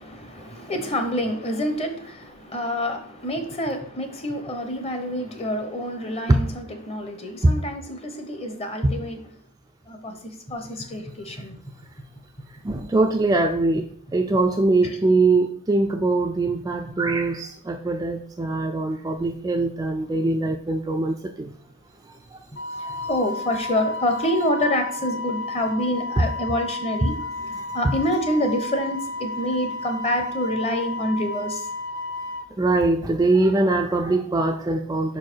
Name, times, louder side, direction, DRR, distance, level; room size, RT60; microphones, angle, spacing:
voice 1, 0.0-9.2 9.9-10.1 10.5-11.6 23.1-27.1 27.7-31.6, left 1 dB, 30° left, 6 dB, 0.9 m, -27 dB
voice 2, 12.6-13.8 14.1-21.5 26.2-26.3 27.8-27.9 32.6-35.2, right 2 dB, 15° right, 4 dB, 0.4 m, -22 dB
Wind instrument woodwind instrument, 22.6-32.5, left 2 dB, 50° left, 0.5 m, -32 dB
5.4 x 4.7 x 4.5 m, 0.63 s
head